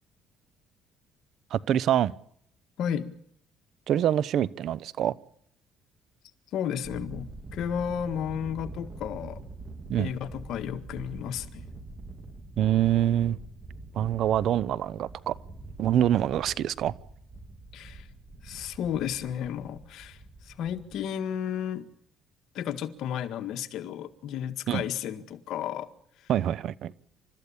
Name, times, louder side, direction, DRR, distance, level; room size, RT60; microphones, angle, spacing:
voice 1, 1.5-2.1 3.9-5.1 9.9-10.1 12.6-13.4 13.9-15.3 15.8-16.9 24.7-24.8 26.3-26.9, right 11 dB, 65° right, 0.8 m, -25 dB
voice 2, 2.8-3.1 6.5-9.4 10.0-11.6 17.7-18.1 18.4-21.9 22.5-25.9 26.2-26.3, left 9 dB, 70° left, 1.7 m, -33 dB
Thunder, 6.8-21.0, right 2 dB, 25° right, 3.5 m, -45 dB
29.0 x 14.0 x 8.7 m
cardioid pair, 105°, 0 cm